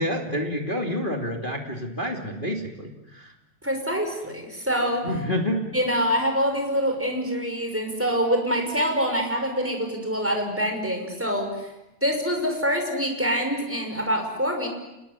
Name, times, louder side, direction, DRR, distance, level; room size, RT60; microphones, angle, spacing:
voice 1, 0.0-3.3 5.0-5.6, left 1 dB, 15° left, 2 dB, 2.4 m, -28 dB
voice 2, 3.6-5.1 5.7-11.7 12.0-14.7, equal, 5° right, 3 dB, 5.7 m, -25 dB
29.5 x 20.5 x 9.8 m, 0.93 s
omnidirectional pair, 4.1 m